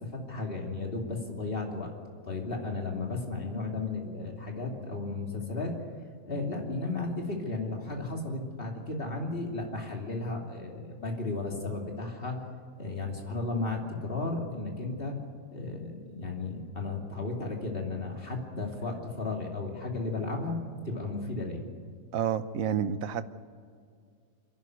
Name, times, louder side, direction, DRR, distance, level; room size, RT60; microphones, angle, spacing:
voice 1, 0.1-1.9 2.2-5.8 6.3-12.4 12.8-15.2 15.5-20.5 20.8-21.7, left 3 dB, 40° left, 0 dB, 3.1 m, -34 dB
voice 2, 22.1-23.2, right 8 dB, 70° right, 12 dB, 1.3 m, -29 dB
28.5 x 11.5 x 9.5 m, 2.2 s
omnidirectional pair, 1.5 m